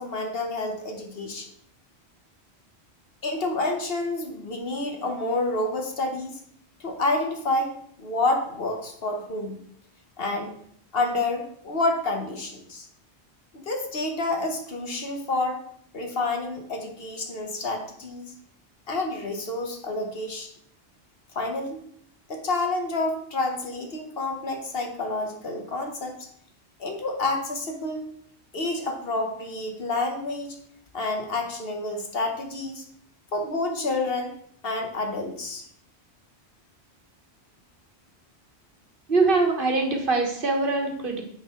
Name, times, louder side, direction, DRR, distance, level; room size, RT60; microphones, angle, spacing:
voice 1, 0.0-1.5 3.2-6.4 6.8-9.6 10.2-10.5 10.9-12.9 13.5-15.6 15.9-18.3 18.9-20.5 21.3-21.8 22.3-26.1 26.8-28.1 28.5-30.5 30.9-32.8 33.3-34.3 34.6-35.6, left 2 dB, 60° left, 3 dB, 1.4 m, -29 dB
voice 2, 39.1-41.2, right 3 dB, 55° right, 2 dB, 1.4 m, -23 dB
9.5 x 3.9 x 4.3 m, 0.66 s
omnidirectional pair, 1.1 m